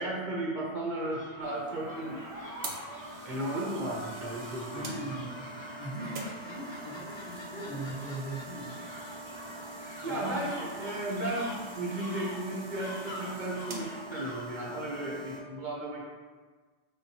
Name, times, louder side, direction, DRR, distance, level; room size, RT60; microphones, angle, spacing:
voice 1, 0.0-2.2 3.2-4.8 10.0-16.1, right 1 dB, 50° right, -2 dB, 0.9 m, -34 dB
sound 1, 1.0-14.4, left 1 dB, 30° left, 0.7 m, -46 dB
sound 2, 1.4-15.4, right 2 dB, 80° right, 1.0 m, -43 dB
voice 2, 4.7-5.5 5.7-6.2 6.5-8.8 10.0-10.5, right 1 dB, 65° left, -6 dB, 1.4 m, -40 dB
5.3 x 3.5 x 2.7 m, 1.4 s
omnidirectional pair, 1.0 m